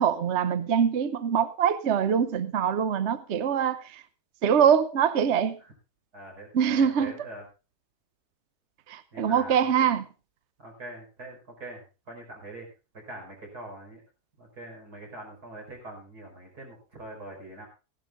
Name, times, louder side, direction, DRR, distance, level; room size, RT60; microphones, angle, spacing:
voice 1, 0.0-4.0 4.4-5.6 6.5-7.1 8.9-10.0, right 8 dB, 55° right, 0.9 m, -24 dB
voice 2, 6.1-7.5 9.1-9.7 10.6-12.7 12.9-14.0 14.4-17.7, right 2 dB, 85° right, 5.7 m, -43 dB
16.0 x 12.0 x 3.7 m
omnidirectional pair, 1.6 m